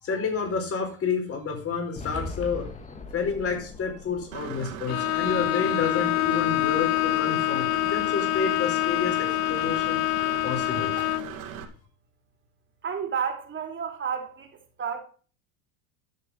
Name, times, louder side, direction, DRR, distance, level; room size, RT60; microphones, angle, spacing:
voice 1, 0.0-2.7 3.1-10.0 10.4-10.9, left 5 dB, 35° left, 4.5 m, -30 dB
sound 1, 2.0-6.1, left 3 dB, 15° left, 1.6 m, -41 dB
Engine / Mechanisms, 4.3-11.6, right 9 dB, 85° right, 2.3 m, -38 dB
Bowed string instrument, 4.9-11.4, left 26 dB, 65° left, 0.5 m, -26 dB
voice 2, 12.8-14.5 14.8-15.0, right 7 dB, 25° right, 3.0 m, -30 dB
11.0 x 6.8 x 6.2 m
supercardioid pair, 115°, 41 cm